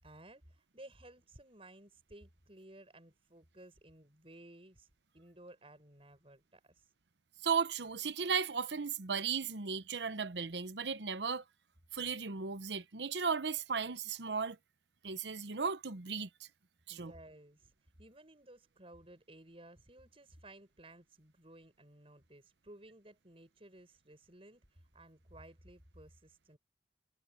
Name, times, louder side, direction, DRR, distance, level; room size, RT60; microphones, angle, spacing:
voice 1, 0.0-4.9 5.1-6.9 16.9-17.7 18.0-26.6, right 1 dB, 35° right, 7.6 m, -56 dB
voice 2, 7.4-11.4 11.9-14.6 15.0-16.5 16.9-17.1, right 5 dB, 80° right, 0.9 m, -36 dB
head